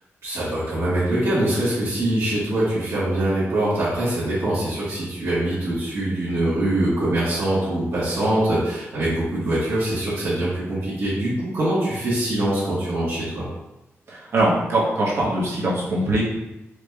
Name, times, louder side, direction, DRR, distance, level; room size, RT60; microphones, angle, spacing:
voice 1, 0.2-13.4, right 1 dB, 75° right, -12 dB, 1.4 m, -23 dB
voice 2, 14.1-16.2, right 1 dB, 60° right, -5 dB, 1.1 m, -22 dB
4.8 x 2.3 x 3.4 m, 0.97 s
wide cardioid pair, 175°, 5 cm